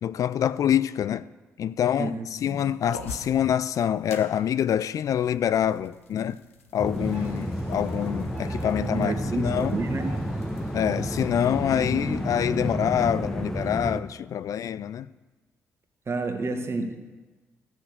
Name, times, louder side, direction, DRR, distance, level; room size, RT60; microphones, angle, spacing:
voice 1, 0.0-1.3 1.6-6.4 6.7-9.8 10.7-15.1, left 9 dB, 55° left, 0.4 m, -26 dB
voice 2, 2.0-2.6 8.8-10.1 16.1-16.9, right 3 dB, 40° right, 1.7 m, -30 dB
sound 1, 2.9-11.3, left 3 dB, 90° left, 0.8 m, -47 dB
sound 2, 6.8-14.0, equal, 5° left, 1.1 m, -30 dB
Flying Birds, 7.0-12.7, left 1 dB, 70° left, 3.1 m, -45 dB
15.0 x 6.3 x 6.7 m
hypercardioid pair, 45°, 7 cm